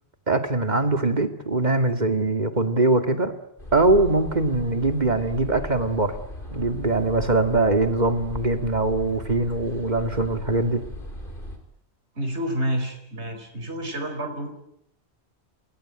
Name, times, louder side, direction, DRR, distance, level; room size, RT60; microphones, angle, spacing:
voice 1, 0.3-3.3 3.7-6.1 6.5-10.8, right 2 dB, 40° right, 7 dB, 2.5 m, -22 dB
sound 1, 3.6-11.6, equal, 50° left, 4.6 m, -38 dB
voice 2, 12.1-14.6, equal, 80° right, 5 dB, 4.9 m, -29 dB
28.5 x 21.5 x 9.0 m, 0.74 s
omnidirectional pair, 1.1 m